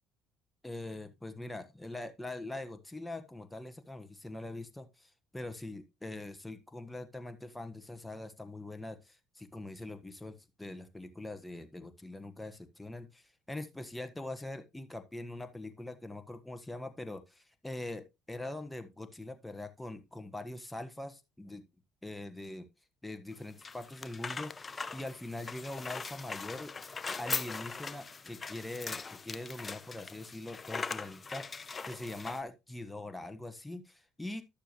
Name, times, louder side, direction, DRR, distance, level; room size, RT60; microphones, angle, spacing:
voice 1, 0.6-21.7 22.0-22.7 23.0-26.7 27.2-31.5 31.8-34.4, left 2 dB, 10° left, 1.4 m, -43 dB
sound 1, 23.3-32.4, left 4 dB, 30° left, 0.7 m, -41 dB
11.5 x 6.7 x 3.1 m
hypercardioid pair, 65°, 0 cm